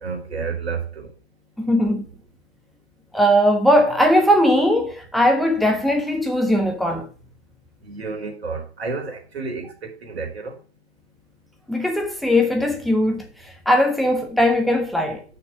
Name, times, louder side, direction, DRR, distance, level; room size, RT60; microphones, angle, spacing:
voice 1, 0.0-1.1 7.8-10.5, right 4 dB, 65° right, 3.1 m, -30 dB
voice 2, 1.6-2.1 3.1-7.1 11.7-15.2, equal, ahead, 1.3 m, -19 dB
6.3 x 6.0 x 7.1 m
figure-of-eight pair, 115°, 33 cm